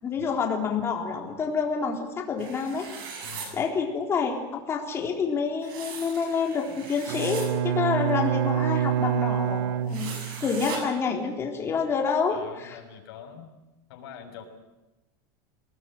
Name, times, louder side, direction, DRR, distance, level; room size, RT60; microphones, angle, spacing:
voice 1, 0.0-2.9 3.5-10.1 10.4-12.8, left 5 dB, 20° left, 2 dB, 3.9 m, -28 dB
sound 1, 2.4-3.5 5.6-7.5 9.9-10.8, right 6 dB, 70° right, 7.7 m, -39 dB
voice 2, 3.2-3.6 12.3-13.5 13.9-14.4, left 8 dB, 85° left, 4 dB, 6.3 m, -44 dB
Bowed string instrument, 7.1-10.6, right 10 dB, 85° right, 1.0 m, -27 dB
24.0 x 19.0 x 9.0 m, 1.0 s
supercardioid pair, 165°, 12 cm